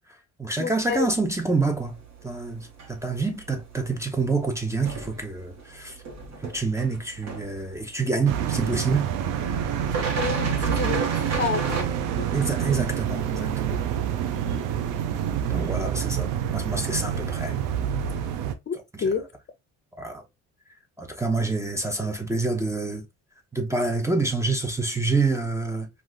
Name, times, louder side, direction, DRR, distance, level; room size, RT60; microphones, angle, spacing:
voice 1, 0.1-6.0 6.4-9.1 12.3-13.8 15.3-17.6 18.9-19.0 20.0-20.3 21.0-23.0 23.5-25.9, right 3 dB, 10° right, 0.6 m, -27 dB
voice 2, 0.6-1.1 10.1-12.3 18.7-19.2, left 6 dB, 35° left, 0.6 m, -29 dB
sound 1, 0.8-11.8, right 4 dB, 60° right, 1.1 m, -37 dB
sound 2, 8.3-18.5, right 9 dB, 85° right, 0.5 m, -27 dB
3.6 x 2.4 x 2.2 m
cardioid pair, 90°, 31 cm